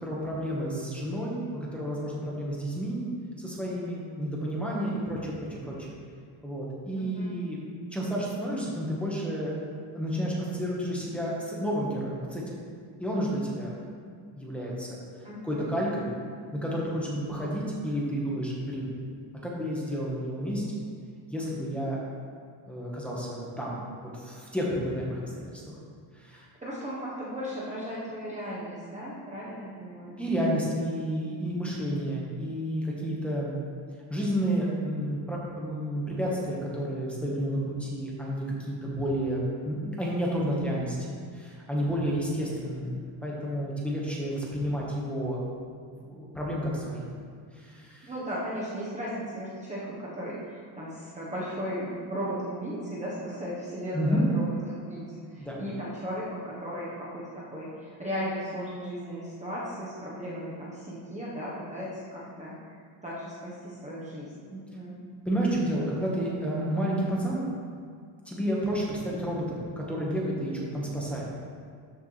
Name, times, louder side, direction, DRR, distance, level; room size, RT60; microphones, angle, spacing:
voice 1, 0.0-3.1 3.4-6.0 6.4-7.6 7.9-9.5 9.9-12.6 13.0-13.7 14.1-15.0 15.4-16.1 16.5-18.9 19.4-20.6 21.3-22.0 22.7-25.4 26.2-26.4 30.2-33.5 34.1-41.0 41.3-45.4 46.0-47.1 47.6-48.1 53.9-54.2 55.4-55.6 65.2-67.4 68.3-71.3, equal, ahead, -6 dB, 1.4 m, -31 dB
voice 2, 6.9-7.3 15.2-16.2 26.3-30.2 48.0-62.5 63.0-65.0, equal, 15° right, -8 dB, 1.2 m, -36 dB
13.0 x 6.6 x 3.4 m, 2.1 s
cardioid pair, 165°, 49 cm